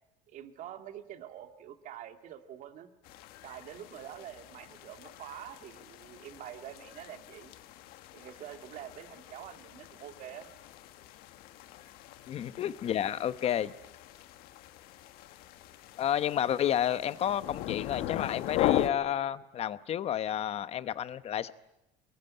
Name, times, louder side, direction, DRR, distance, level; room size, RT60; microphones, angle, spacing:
voice 1, 0.3-2.9 3.4-7.5 8.1-10.5, right 11 dB, 55° right, 6 dB, 2.4 m, -46 dB
sound 1, 3.0-18.9, left 13 dB, 70° left, 1.4 m, -39 dB
voice 2, 12.3-13.7 16.0-21.5, left 10 dB, 40° left, 14 dB, 0.9 m, -31 dB
24.0 x 21.0 x 9.6 m, 0.91 s
cardioid pair, 140°, 16 cm